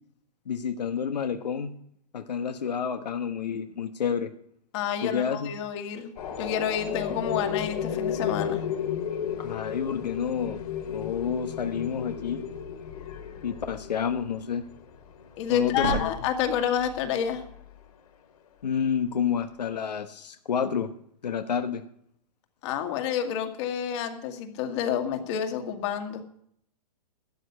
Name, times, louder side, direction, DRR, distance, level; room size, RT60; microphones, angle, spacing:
voice 1, 0.5-1.7 2.1-4.3 5.0-5.5 9.4-10.6 10.8-12.4 13.4-14.6 15.5-16.1 18.6-20.9 21.2-21.8, left 7 dB, 85° left, 7 dB, 1.2 m, -29 dB
voice 2, 4.7-8.6 15.4-17.4 22.6-26.2, left 8 dB, 45° left, 5 dB, 2.1 m, -29 dB
sound 1, 6.2-17.8, left 8 dB, 65° left, 2.5 m, -34 dB
sound 2, 12.5-13.1 15.3-16.9, right 7 dB, 80° right, 1.4 m, -35 dB
13.0 x 8.4 x 9.9 m, 0.70 s
hypercardioid pair, 140°, 21 cm